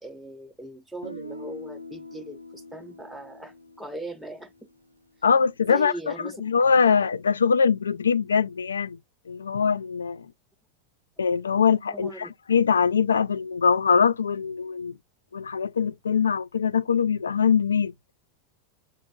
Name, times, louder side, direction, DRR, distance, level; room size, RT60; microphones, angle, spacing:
voice 1, 0.0-4.5 5.6-6.4 11.9-12.3, right 2 dB, 5° right, 0.4 m, -39 dB
Guitar, 1.0-5.0, left 1 dB, 85° right, 0.4 m, -43 dB
voice 2, 5.2-5.9 6.4-9.0 9.3-10.2 11.2-14.9 15.3-17.9, left 6 dB, 70° left, 0.3 m, -22 dB
7.3 x 2.5 x 2.3 m
figure-of-eight pair, 90°, 0 cm